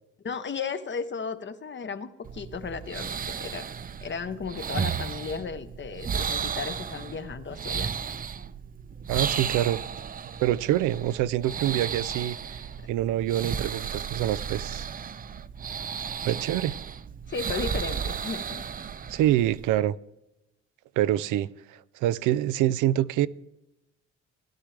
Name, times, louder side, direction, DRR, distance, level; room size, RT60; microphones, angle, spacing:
voice 1, 0.2-3.7 4.0-7.9 17.3-18.6, left 5 dB, 40° left, 0.9 m, -35 dB
sound 1, 2.2-19.8, right 7 dB, 30° right, 0.4 m, -34 dB
voice 2, 9.1-9.8 10.4-12.6 12.9-14.9 16.2-16.8 19.1-20.0 21.0-23.3, right 13 dB, 85° right, 0.5 m, -26 dB
17.0 x 11.0 x 3.3 m
cardioid pair, 90°, 30 cm